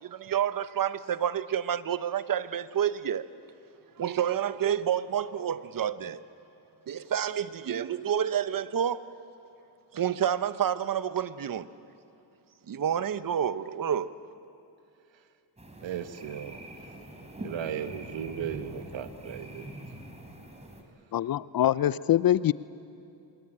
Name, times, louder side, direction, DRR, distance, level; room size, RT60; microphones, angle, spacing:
voice 1, 0.0-3.3 4.0-6.2 6.9-9.0 9.9-11.7 12.7-14.1, right 9 dB, 45° right, 14 dB, 1.0 m, -29 dB
sound 1, 15.6-20.8, right 1 dB, 15° right, 3.9 m, -44 dB
voice 2, 15.8-17.0 17.4-19.7, right 8 dB, 65° right, 9 dB, 1.6 m, -37 dB
voice 3, 21.1-22.5, left 12 dB, 45° left, 18 dB, 0.6 m, -24 dB
25.0 x 22.0 x 8.7 m, 2.7 s
cardioid pair, 75°, 48 cm